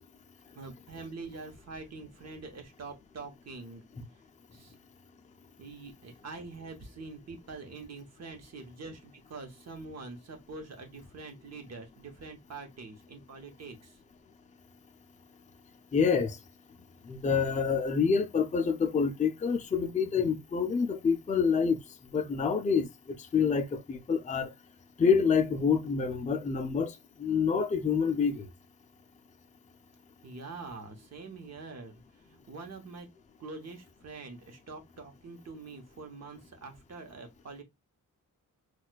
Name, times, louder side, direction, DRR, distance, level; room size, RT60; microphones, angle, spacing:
voice 1, 0.5-3.8 4.5-4.7 5.6-14.0 30.2-33.1 33.4-37.6, right 3 dB, 55° right, 0.9 m, -45 dB
voice 2, 15.9-16.4 17.1-21.8 22.1-22.9 23.3-24.5 25.0-26.9 27.2-28.5, left 6 dB, 25° left, 0.4 m, -27 dB
4.2 x 2.3 x 2.2 m
wide cardioid pair, 120°, 32 cm